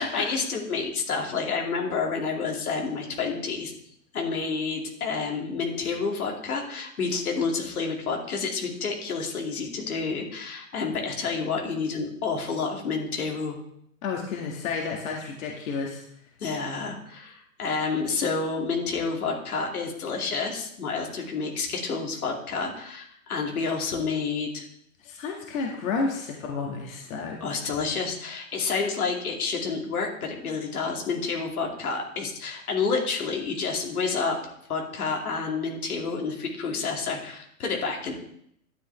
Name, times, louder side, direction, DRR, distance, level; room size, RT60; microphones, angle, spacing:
voice 1, 0.0-3.7 4.1-13.6 16.4-24.7 27.4-34.4 34.7-38.1, left 4 dB, 90° left, 0 dB, 2.6 m, -29 dB
voice 2, 14.0-16.0 25.0-27.4, left 4 dB, 70° left, 0 dB, 2.1 m, -31 dB
12.0 x 7.8 x 3.4 m, 0.71 s
hypercardioid pair, 130°, 43 cm